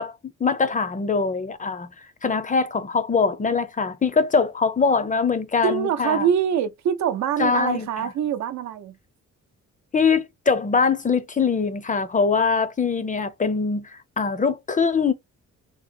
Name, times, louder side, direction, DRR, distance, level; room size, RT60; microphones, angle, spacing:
voice 1, 0.0-1.9 2.2-6.3 7.4-8.1 9.9-15.1, left 5 dB, 25° left, 0.6 m, -23 dB
voice 2, 5.6-9.0, right 8 dB, 65° right, 0.7 m, -24 dB
3.0 x 2.0 x 4.1 m
cardioid pair, 90°, 30 cm